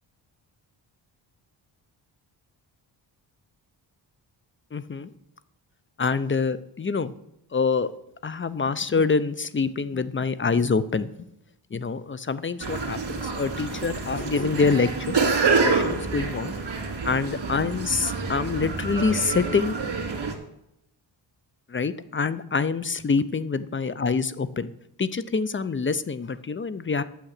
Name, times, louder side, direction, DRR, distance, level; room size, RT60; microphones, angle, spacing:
voice 1, 4.7-5.1 6.0-7.1 7.5-7.9 8.2-11.1 11.7-16.5 17.0-19.8 21.7-24.7 25.0-27.0, left 4 dB, 25° left, 16 dB, 0.6 m, -26 dB
sound 1, 12.6-20.3, right 4 dB, 55° right, 2.4 m, -27 dB
8.9 x 7.2 x 6.6 m, 0.80 s
cardioid pair, 70°, 48 cm